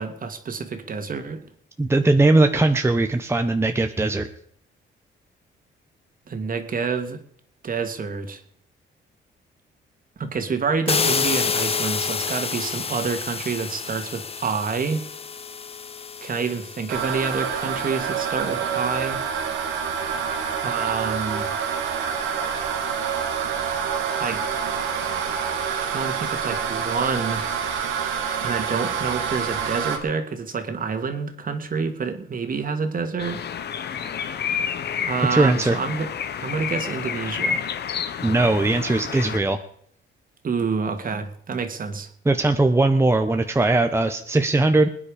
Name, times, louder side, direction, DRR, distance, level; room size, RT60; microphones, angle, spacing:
voice 1, 0.0-1.4 6.3-7.2 7.6-8.4 10.2-15.0 16.2-19.2 20.6-21.5 24.2-25.3 25.9-27.4 28.4-33.4 35.1-36.1 36.4-37.6 40.4-42.1, right 5 dB, 45° right, 7 dB, 2.3 m, -28 dB
voice 2, 1.8-4.3 35.3-35.8 38.2-39.6 42.2-44.9, right 2 dB, 15° right, 6 dB, 1.0 m, -19 dB
sound 1, 10.9-17.7, left 6 dB, 30° left, 0.8 m, -28 dB
sound 2, 16.9-30.0, right 7 dB, 90° right, 2.4 m, -27 dB
sound 3, 33.2-39.4, left 7 dB, 55° left, 1.2 m, -29 dB
20.5 x 9.8 x 5.1 m, 0.66 s
cardioid pair, 90°, 20 cm